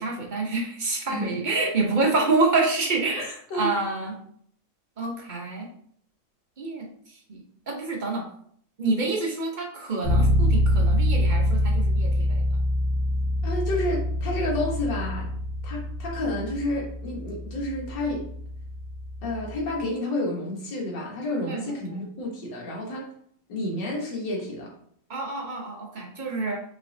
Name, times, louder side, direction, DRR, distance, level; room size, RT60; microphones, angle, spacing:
voice 1, 0.0-4.2 5.0-5.7 6.6-6.9 7.3-7.4 7.7-8.2 8.8-12.4 21.5-21.7 25.1-26.6, right 3 dB, 55° right, 0 dB, 0.5 m, -27 dB
voice 2, 1.1-1.7 2.0-2.1 3.2-3.3 3.5-3.7 13.4-15.3 15.6-18.2 19.2-23.1 23.5-24.7, left 1 dB, 80° left, -2 dB, 1.9 m, -30 dB
Bass guitar, 10.0-19.7, left 1 dB, 25° left, 0.8 m, -25 dB
5.4 x 3.3 x 2.6 m, 0.63 s
omnidirectional pair, 1.9 m